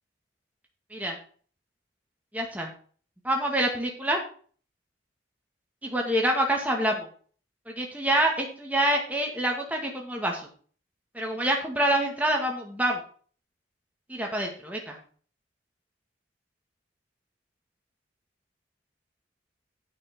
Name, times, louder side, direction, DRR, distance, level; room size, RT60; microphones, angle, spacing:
voice 1, 2.3-2.7 3.2-4.2 5.8-7.1 7.7-10.4 11.1-13.0 14.1-15.0, right 1 dB, 10° right, 0 dB, 2.0 m, -26 dB
9.3 x 6.2 x 5.9 m, 0.44 s
head